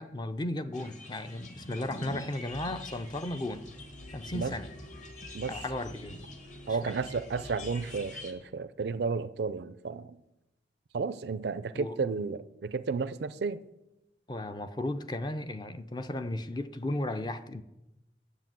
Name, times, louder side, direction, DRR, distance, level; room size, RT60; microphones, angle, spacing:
voice 1, 0.0-3.6 4.1-4.7 5.5-6.3 6.7-6.9 11.7-12.3 14.3-17.6, left 1 dB, 25° left, 0.4 m, -35 dB
sound 1, 0.7-8.3, left 1 dB, 45° left, 1.4 m, -46 dB
sound 2, 2.5-8.1, left 1 dB, 65° left, 2.0 m, -49 dB
voice 2, 6.7-10.2 10.9-13.6, right 4 dB, 70° right, 0.4 m, -32 dB
8.2 x 7.3 x 7.4 m
head